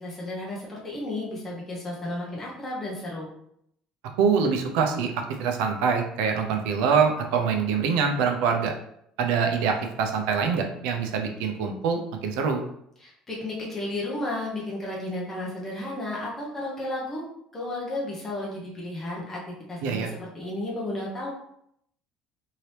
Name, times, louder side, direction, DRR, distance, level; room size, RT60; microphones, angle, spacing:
voice 1, 0.0-3.3 13.0-17.2 17.5-19.4 19.7-21.3, left 1 dB, 15° left, -5 dB, 0.7 m, -33 dB
voice 2, 4.2-8.7 9.2-12.6 19.8-20.1, right 6 dB, 80° right, 4 dB, 0.5 m, -24 dB
2.9 x 2.8 x 3.2 m, 0.73 s
cardioid pair, 175°, 2 cm